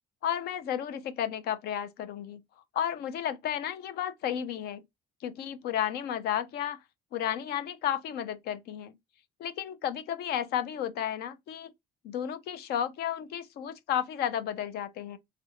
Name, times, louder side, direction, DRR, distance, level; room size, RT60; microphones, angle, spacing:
voice 1, 0.2-2.4 2.7-4.8 5.2-6.8 7.1-8.9 9.4-11.7 12.0-15.2, left 10 dB, 70° left, 0.5 m, -32 dB
3.2 x 2.5 x 2.8 m
cardioid pair, 110°, 17 cm